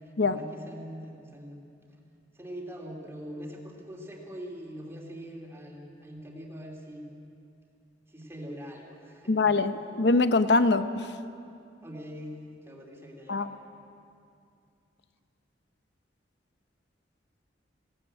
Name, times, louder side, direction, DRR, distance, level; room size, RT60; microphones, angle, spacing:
voice 1, 0.2-1.6 2.3-7.1 8.1-9.5 11.8-12.4 12.7-13.5, equal, 15° right, -1 dB, 3.0 m, -42 dB
voice 2, 9.3-11.1 13.3-13.5, left 3 dB, 65° left, 11 dB, 0.8 m, -23 dB
20.0 x 17.5 x 8.7 m, 2.5 s
head